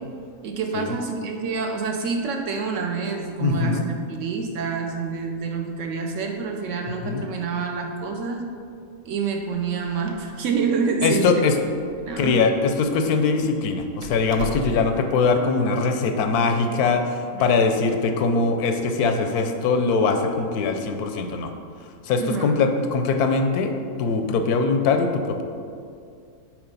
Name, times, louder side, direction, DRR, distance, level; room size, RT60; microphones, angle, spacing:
voice 1, 0.4-8.5 9.0-11.3 12.0-12.5 17.3-17.6 22.2-22.5, right 5 dB, 65° right, 3 dB, 0.9 m, -27 dB
voice 2, 3.4-3.9 7.0-7.3 11.0-11.5 12.2-17.0 17.4-21.5 22.1-23.7 24.0-25.4, left 4 dB, 85° left, 6 dB, 1.1 m, -22 dB
Door, 9.8-15.1, right 2 dB, 85° right, 0.4 m, -40 dB
8.1 x 3.1 x 5.2 m, 2.3 s
omnidirectional pair, 1.6 m